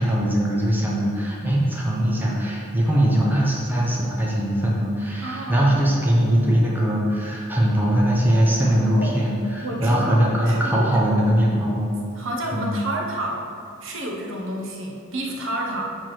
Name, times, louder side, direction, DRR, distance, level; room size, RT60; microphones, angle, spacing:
voice 1, 0.0-11.9 12.5-12.7, equal, 10° right, -4 dB, 0.8 m, -21 dB
voice 2, 5.2-5.7 8.9-9.1 9.6-11.1 12.2-13.5 13.8-15.8, right 1 dB, 65° right, -1 dB, 0.9 m, -30 dB
4.8 x 4.4 x 6.0 m, 2.6 s
head